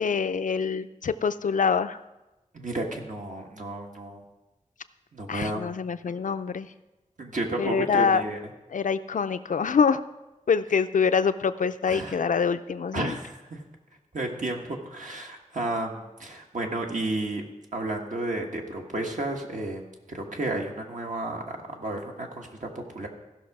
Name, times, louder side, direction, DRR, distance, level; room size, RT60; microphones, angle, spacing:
voice 1, 0.0-2.0 5.3-6.7 7.6-8.2 8.7-10.0 10.5-13.1, left 6 dB, 80° left, 11 dB, 0.4 m, -25 dB
voice 2, 2.5-4.2 5.1-5.6 6.0-6.1 7.2-8.4 11.9-12.1 12.9-13.6 14.1-17.4 17.7-19.8 20.1-23.1, right 2 dB, 75° right, 1 dB, 1.5 m, -32 dB
15.0 x 6.2 x 4.8 m, 1.0 s
wide cardioid pair, 75°, 13 cm